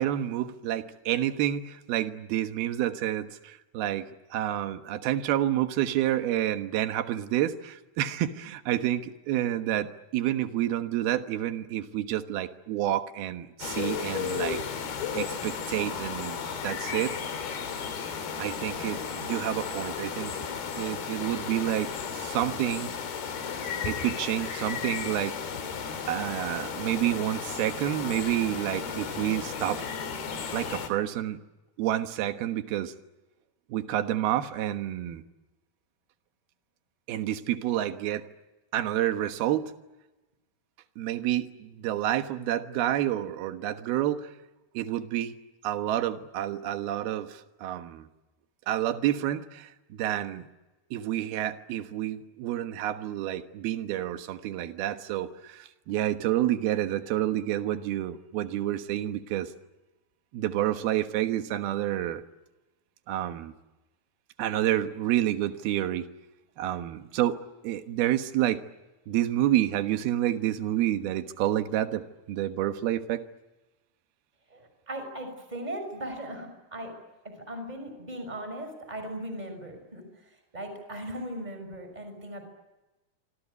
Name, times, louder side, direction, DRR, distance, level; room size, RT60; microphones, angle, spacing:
voice 1, 0.0-14.6 15.1-16.4 16.6-17.2 18.4-20.4 20.8-22.9 23.8-25.4 26.1-29.8 30.5-31.4 31.8-32.9 33.7-35.2 37.1-38.3 38.7-39.7 41.0-44.3 44.7-45.3 45.6-48.1 48.7-50.5 50.9-59.5 60.3-62.2 63.1-63.5 64.4-66.1 66.6-67.4 67.6-68.6 69.1-73.2, right 12 dB, 75° right, 8 dB, 3.2 m, -29 dB
sound 1, 13.6-30.9, left 6 dB, 70° left, 4.6 m, -34 dB
voice 2, 74.5-76.9 77.2-80.0 80.5-82.4, right 1 dB, 10° right, 7 dB, 5.8 m, -38 dB
26.5 x 26.0 x 8.3 m, 1.1 s
omnidirectional pair, 4.5 m